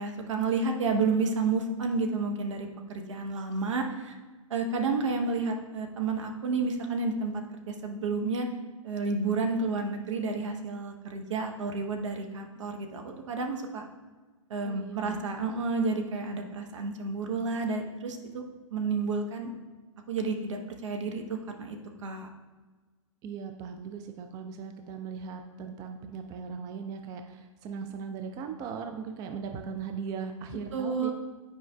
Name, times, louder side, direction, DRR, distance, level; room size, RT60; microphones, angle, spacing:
voice 1, 0.0-4.1 4.5-7.3 7.7-8.5 8.8-13.8 14.5-18.4 18.7-19.5 20.1-21.8 22.0-22.3 30.7-31.1, right 4 dB, 65° right, 3 dB, 0.8 m, -30 dB
voice 2, 14.7-15.2 23.2-31.1, right 6 dB, 20° right, 5 dB, 0.3 m, -38 dB
9.2 x 4.9 x 2.3 m, 1.3 s
figure-of-eight pair, 110°, 17 cm